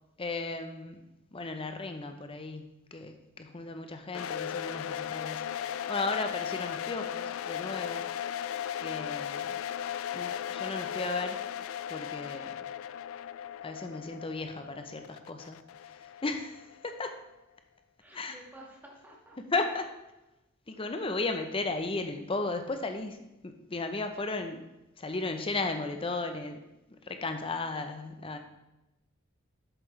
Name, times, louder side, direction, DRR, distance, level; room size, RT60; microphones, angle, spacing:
voice 1, 0.2-2.6 2.9-5.5 5.9-8.0 8.8-9.5 10.1-11.4 11.9-12.5 13.6-15.6 16.2-17.1 18.1-18.4 19.4-19.9 20.7-23.2 23.4-24.7 25.0-26.6 27.0-28.4, left 3 dB, 25° left, 7 dB, 0.7 m, -35 dB
sound 1, 4.1-17.0, left 9 dB, 85° left, 0.3 m, -37 dB
voice 2, 18.0-19.4 20.7-21.1 23.2-23.3, right 1 dB, 10° right, -3 dB, 1.7 m, -54 dB
8.0 x 7.4 x 3.2 m, 0.96 s
head